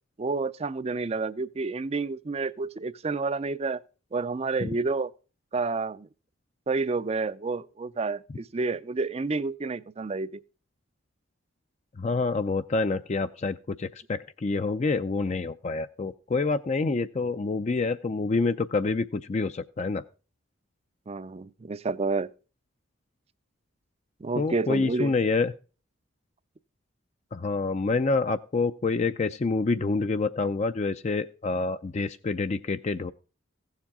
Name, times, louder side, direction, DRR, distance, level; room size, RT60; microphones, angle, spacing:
voice 1, 0.2-3.8 4.1-5.1 5.5-6.1 6.7-10.4 21.1-22.3 24.2-25.1, right 3 dB, 30° right, 0.4 m, -29 dB
voice 2, 12.0-20.0 24.4-25.5 27.3-33.1, left 3 dB, 35° left, 0.4 m, -27 dB
16.0 x 7.3 x 3.6 m
head